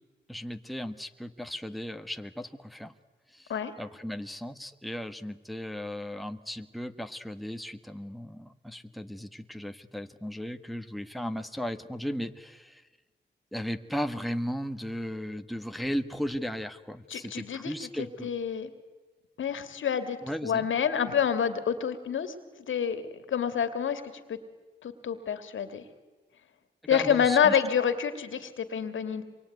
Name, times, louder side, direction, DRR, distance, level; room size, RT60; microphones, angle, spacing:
voice 1, 0.3-2.9 3.3-3.5 3.8-12.8 13.5-18.3 20.2-20.6 26.9-27.6, equal, ahead, 8 dB, 1.5 m, -36 dB
voice 2, 17.1-18.7 19.4-22.4 22.7-23.0 23.3-24.0 24.3-24.4 24.8-25.8 26.9-29.2, left 7 dB, 75° left, 10 dB, 2.6 m, -28 dB
26.5 x 23.0 x 9.5 m, 1.3 s
cardioid pair, 70°, 20 cm